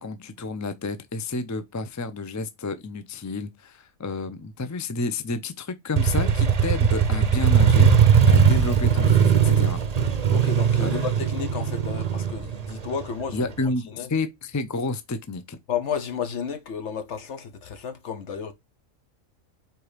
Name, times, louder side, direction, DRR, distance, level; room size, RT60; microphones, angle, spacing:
voice 1, 0.0-9.8 10.8-11.1 13.3-15.6, left 3 dB, 25° left, 0.4 m, -30 dB
Motorcycle, 6.0-13.6, right 7 dB, 35° right, 0.7 m, -19 dB
voice 2, 10.3-14.1 15.7-18.5, left 7 dB, 60° left, 1.2 m, -32 dB
4.6 x 4.0 x 5.0 m
omnidirectional pair, 1.4 m